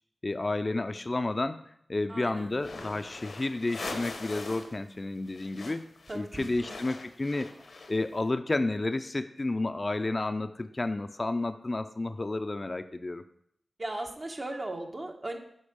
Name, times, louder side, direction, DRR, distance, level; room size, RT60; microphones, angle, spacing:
voice 1, 0.2-1.6 1.9-5.9 6.1-13.2, left 2 dB, 45° left, 9 dB, 0.5 m, -31 dB
voice 2, 2.1-2.5 6.1-6.5 13.8-15.4, right 2 dB, 45° right, 2 dB, 1.3 m, -37 dB
sound 1, 2.6-4.8 5.0-8.2, left 3 dB, 75° left, 0.9 m, -42 dB
10.0 x 3.9 x 5.1 m, 0.71 s
cardioid pair, 40°, 0 cm